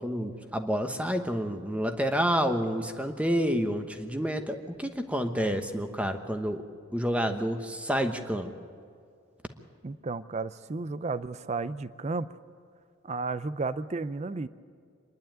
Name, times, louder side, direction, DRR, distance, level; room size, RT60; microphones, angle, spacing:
voice 1, 0.0-6.6 6.9-8.5, equal, 5° right, 7 dB, 1.0 m, -29 dB
voice 2, 9.8-12.3 13.0-14.5, right 3 dB, 30° right, 15 dB, 0.5 m, -33 dB
25.5 x 11.0 x 9.1 m, 2.3 s
head